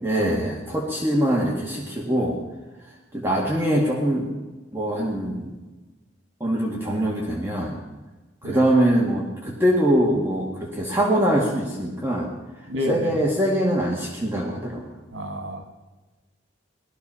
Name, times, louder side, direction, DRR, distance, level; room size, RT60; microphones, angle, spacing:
voice 1, 0.0-2.4 3.1-4.3 4.7-5.5 6.4-7.8 8.4-12.3 12.9-14.9, right 1 dB, 15° right, -3 dB, 2.1 m, -23 dB
voice 2, 12.7-13.2 15.1-15.6, equal, 85° right, 5 dB, 2.1 m, -30 dB
18.5 x 13.5 x 5.6 m, 1.2 s
head